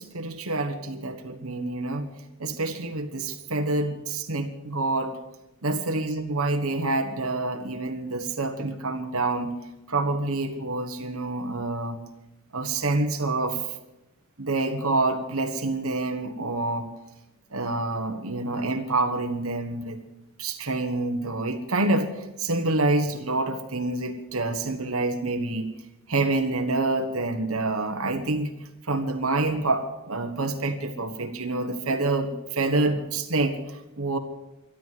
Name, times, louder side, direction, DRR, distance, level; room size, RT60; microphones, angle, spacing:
voice 1, 0.0-2.1 2.4-5.2 5.6-9.5 9.9-12.0 12.5-13.6 14.4-16.9 17.5-20.0 20.4-25.7 26.1-28.5 28.9-34.2, right 2 dB, 75° right, 5 dB, 1.4 m, -27 dB
13.0 x 11.5 x 7.7 m, 0.95 s
head